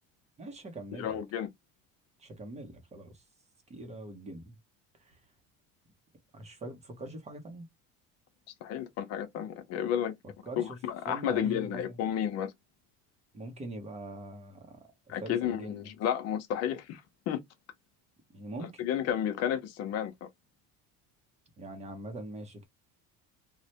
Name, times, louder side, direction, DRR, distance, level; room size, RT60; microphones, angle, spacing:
voice 1, 0.4-1.2 2.2-3.2 3.7-4.5 5.0-5.2 6.3-7.7 10.4-10.8 11.1-12.0 13.3-14.9 15.2-15.9 18.3-18.8 21.6-22.7, right 1 dB, 20° right, 0.7 m, -43 dB
voice 2, 0.9-1.5 8.6-10.2 10.6-12.5 15.1-17.0 17.3-17.4 18.8-20.3, left 9 dB, 55° left, 0.7 m, -32 dB
3.1 x 2.1 x 2.8 m
cardioid pair, 150°, 31 cm